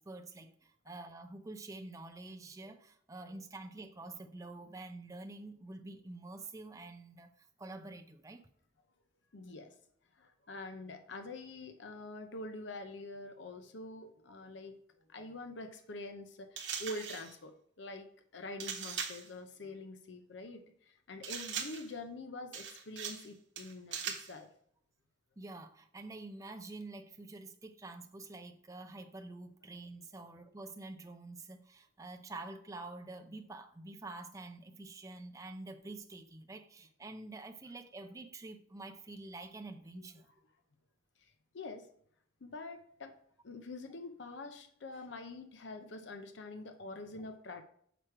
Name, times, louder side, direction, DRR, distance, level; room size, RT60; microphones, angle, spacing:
voice 1, 0.0-8.4 25.4-40.3, right 2 dB, 15° right, 0.5 m, -47 dB
voice 2, 9.3-9.7 10.2-14.8 15.1-24.5 40.0-40.1 41.2-41.3 41.5-41.9 42.4-43.1 43.4-47.6, left 2 dB, 70° left, 0.6 m, -46 dB
sound 1, 16.6-17.3 18.6-19.3 21.2-21.9 22.5-23.3 23.6-24.3, right 7 dB, 75° right, 0.9 m, -40 dB
6.1 x 5.0 x 4.5 m
head